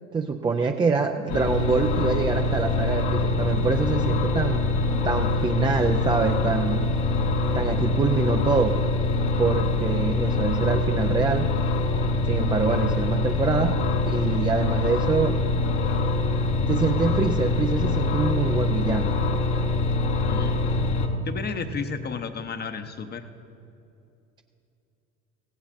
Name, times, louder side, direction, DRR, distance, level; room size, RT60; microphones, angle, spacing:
voice 1, 0.1-4.6 5.0-6.9 7.5-8.8 9.4-11.5 12.3-15.4 16.7-19.2, right 4 dB, 15° right, 4 dB, 0.4 m, -25 dB
sound 1, 1.3-21.1, left 3 dB, 55° left, 1.4 m, -24 dB
voice 2, 20.2-20.7 21.2-23.2, left 5 dB, 25° left, 9 dB, 0.8 m, -33 dB
17.5 x 16.0 x 2.6 m, 2.8 s
hypercardioid pair, 75°, 41 cm